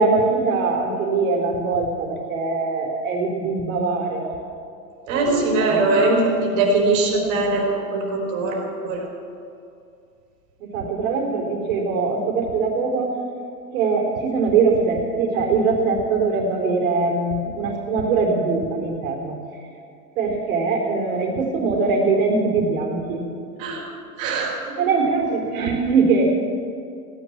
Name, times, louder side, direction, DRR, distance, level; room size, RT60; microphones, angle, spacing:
voice 1, 0.0-4.4 5.0-6.1 10.6-13.2 13.7-19.6 20.2-23.3 24.7-26.3, right 4 dB, 60° right, 1 dB, 4.0 m, -22 dB
voice 2, 5.1-9.0 23.6-23.9 24.2-24.6, right 2 dB, 45° right, -1 dB, 4.3 m, -21 dB
16.5 x 10.5 x 7.3 m, 2.5 s
hypercardioid pair, 130°, 46 cm